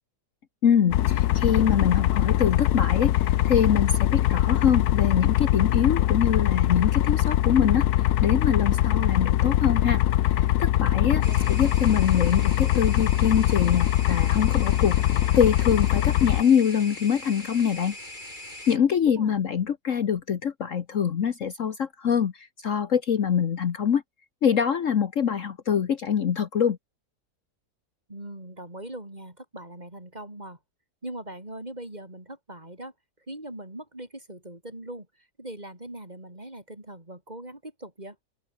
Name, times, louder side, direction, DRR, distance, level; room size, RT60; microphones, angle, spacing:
voice 1, 0.6-3.2 3.4-7.9 8.2-10.0 10.4-17.9 18.7-22.3 22.6-24.0 24.4-26.8, left 8 dB, 55° left, 1.4 m, -24 dB
sound 1, 0.9-16.4, left 13 dB, 80° left, 1.2 m, -22 dB
voice 2, 11.1-11.5 19.0-19.4 28.1-30.6 31.0-32.9 33.3-35.1 35.4-38.2, right 1 dB, 25° right, 5.2 m, -40 dB
sound 2, 11.2-18.8, left 1 dB, 30° left, 7.0 m, -41 dB
open air
omnidirectional pair, 1.7 m